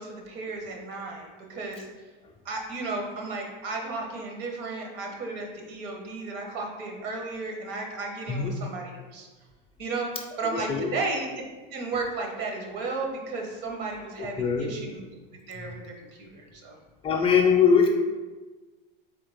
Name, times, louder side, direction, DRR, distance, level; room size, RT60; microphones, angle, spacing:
voice 1, 0.0-1.9 2.4-9.3 9.8-10.1 10.4-11.3 11.7-15.1 15.5-16.8, right 3 dB, 70° right, 2 dB, 1.1 m, -34 dB
voice 2, 10.4-10.9 14.4-14.7 17.0-17.9, left 6 dB, 20° left, 1 dB, 0.4 m, -22 dB
3.9 x 3.4 x 3.4 m, 1.3 s
supercardioid pair, 120°, 29 cm